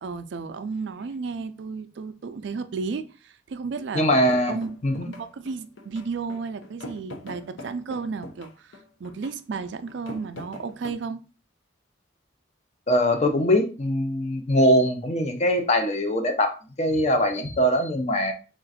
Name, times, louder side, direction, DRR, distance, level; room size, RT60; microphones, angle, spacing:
voice 1, 0.0-4.2 4.5-11.2, right 4 dB, 65° right, 0.4 m, -33 dB
voice 2, 3.9-4.6 4.8-5.1 12.9-18.3, equal, 35° left, 0.6 m, -22 dB
sound 1, 4.3-10.9, left 2 dB, 75° left, 0.7 m, -43 dB
3.6 x 2.5 x 4.0 m
head